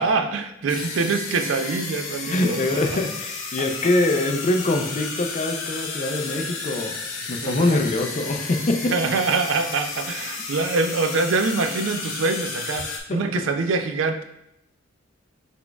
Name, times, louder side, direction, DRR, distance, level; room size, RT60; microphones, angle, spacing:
voice 1, 0.0-3.0 3.6-3.7 7.4-7.8 8.9-14.2, right 4 dB, 70° right, 8 dB, 0.4 m, -24 dB
sound 1, 0.7-13.0, left 4 dB, 80° left, 0.6 m, -33 dB
voice 2, 2.3-7.0 7.3-8.9 13.1-13.2, left 2 dB, 40° left, 5 dB, 0.4 m, -23 dB
4.5 x 4.1 x 2.3 m, 0.80 s
head